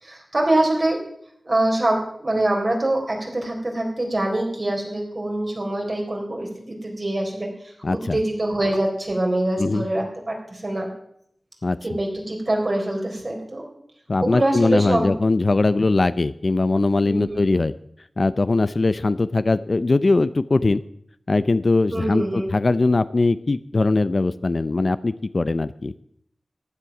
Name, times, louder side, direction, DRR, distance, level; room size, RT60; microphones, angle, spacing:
voice 1, 0.0-1.0 1.5-10.9 11.8-13.7 14.2-15.1 17.1-17.5 21.9-22.5, right 1 dB, 50° right, 1 dB, 4.0 m, -24 dB
voice 2, 7.8-8.2 9.6-9.8 11.6-11.8 14.1-17.7 18.2-20.8 21.3-25.9, left 3 dB, 60° left, 15 dB, 0.6 m, -21 dB
15.0 x 10.0 x 6.0 m, 0.69 s
wide cardioid pair, 45°, 0 cm